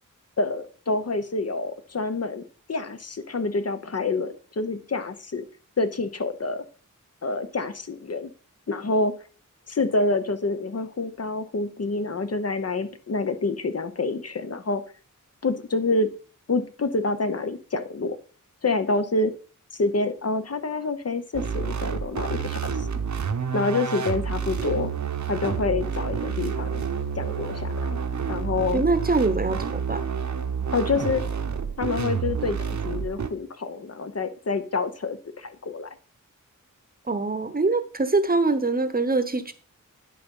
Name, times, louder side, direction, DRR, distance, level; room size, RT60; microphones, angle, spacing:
voice 1, 0.4-2.4 2.7-5.5 5.8-6.6 7.2-8.3 8.7-9.1 9.7-14.8 15.4-16.1 16.5-18.2 18.6-19.3 19.7-22.9 23.5-24.9 25.3-26.8 27.2-28.0 28.3-28.8 30.7-31.2 31.8-36.0, left 3 dB, 50° left, 10 dB, 0.8 m, -27 dB
sound 1, 21.3-33.3, right 6 dB, 60° right, 0.8 m, -29 dB
voice 2, 28.7-30.0 37.1-39.5, right 3 dB, 25° right, 11 dB, 0.8 m, -23 dB
10.5 x 4.0 x 5.4 m, 0.40 s
wide cardioid pair, 80°, 32 cm